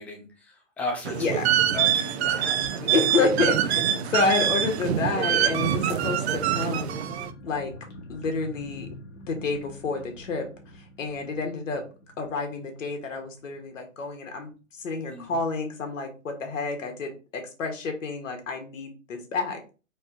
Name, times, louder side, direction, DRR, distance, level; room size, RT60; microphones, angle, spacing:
voice 1, 0.0-1.4 1.7-2.5 15.1-15.3, left 3 dB, 5° left, 0 dB, 0.3 m, -35 dB
sound 1, 1.0-7.3, right 10 dB, 55° right, 0.6 m, -25 dB
voice 2, 1.1-1.4 2.8-7.0 7.4-7.7 8.1-8.9 9.3-10.5 10.7-11.8 12.2-19.7, left 3 dB, 75° left, 4 dB, 1.7 m, -29 dB
sound 2, 1.1-13.5 13.8-13.9 14.1-14.4, left 2 dB, 60° left, 2.0 m, -43 dB
4.3 x 3.2 x 3.7 m, 0.33 s
hypercardioid pair, 130°, 38 cm